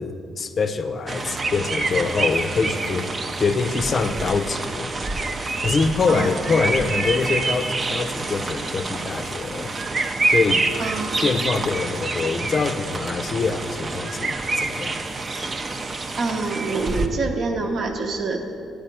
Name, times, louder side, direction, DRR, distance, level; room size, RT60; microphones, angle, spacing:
voice 1, 0.0-3.1 3.4-4.9 5.6-9.7 10.3-10.7 11.2-15.1, left 4 dB, 45° left, 9 dB, 0.5 m, -24 dB
sound 1, 1.1-17.1, right 3 dB, 35° right, 0.6 m, -27 dB
voice 2, 6.1-6.5 10.8-11.5 16.2-18.4, right 3 dB, 55° right, 4 dB, 0.9 m, -26 dB
9.0 x 4.9 x 6.7 m, 2.6 s
cardioid pair, 90°, 0 cm